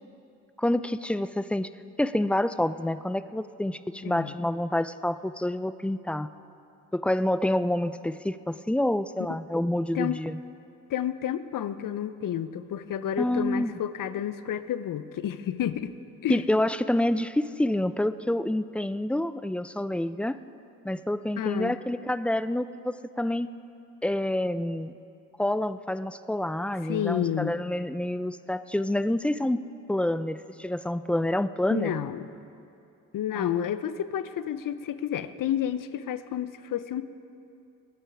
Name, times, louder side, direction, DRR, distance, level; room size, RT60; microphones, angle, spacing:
voice 1, 0.6-1.7 2.0-6.3 6.9-10.4 13.2-13.8 16.3-20.4 20.8-23.5 24.0-24.9 25.4-29.6 29.9-32.0 33.4-33.5, left 1 dB, 5° left, 14 dB, 0.3 m, -27 dB
voice 2, 4.0-4.3 9.9-10.2 10.9-15.9 16.2-16.4 21.4-21.8 26.8-27.6 31.7-32.2 33.1-37.0, left 10 dB, 55° left, 13 dB, 0.7 m, -30 dB
22.0 x 9.2 x 4.9 m, 2.6 s
hypercardioid pair, 45°, 40 cm